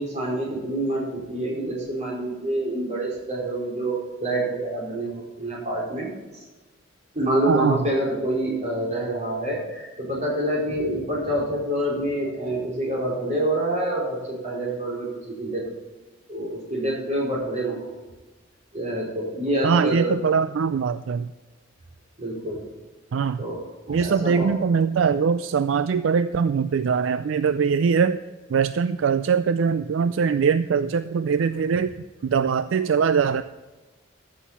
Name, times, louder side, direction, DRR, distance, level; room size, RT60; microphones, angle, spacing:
voice 1, 0.0-6.1 7.1-15.6 16.3-17.9 18.7-20.2 22.2-22.6 23.4-24.5, right 1 dB, 35° right, -3 dB, 4.4 m, -27 dB
voice 2, 7.5-7.8 19.6-21.3 23.1-23.4 23.9-28.2 28.5-31.9 32.2-33.4, right 6 dB, 70° right, 13 dB, 0.4 m, -22 dB
14.0 x 6.5 x 5.6 m, 1.2 s
head